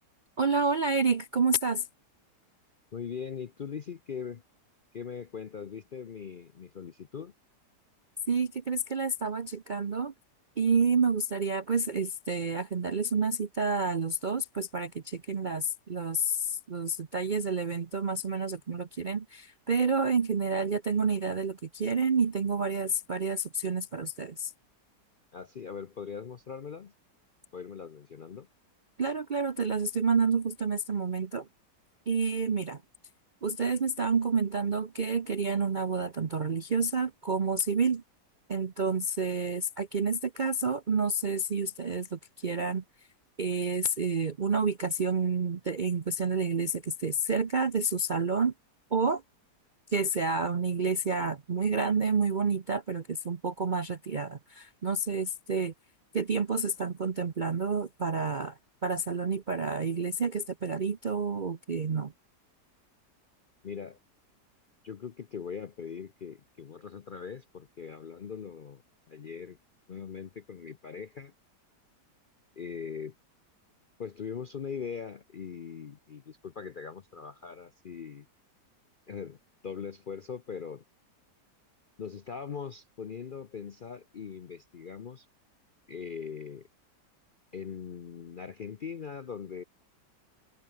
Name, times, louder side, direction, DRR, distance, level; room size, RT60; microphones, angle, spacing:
voice 1, 0.4-1.9 8.3-10.1 10.6-24.5 29.0-31.5 32.1-32.8 33.4-38.0 38.5-42.8 43.4-48.5 48.9-49.2 49.9-55.7 56.1-62.1, right 4 dB, 40° right, 0.7 m, -29 dB
voice 2, 2.9-4.4 4.9-7.3 25.3-26.9 27.5-28.5 63.6-64.0 64.8-68.8 69.1-69.6 69.9-71.3 72.6-73.1 74.0-78.3 79.1-79.4 79.6-80.8 82.0-85.3 85.9-86.7 87.5-89.6, left 6 dB, 70° left, 0.4 m, -40 dB
omnidirectional pair, 1.8 m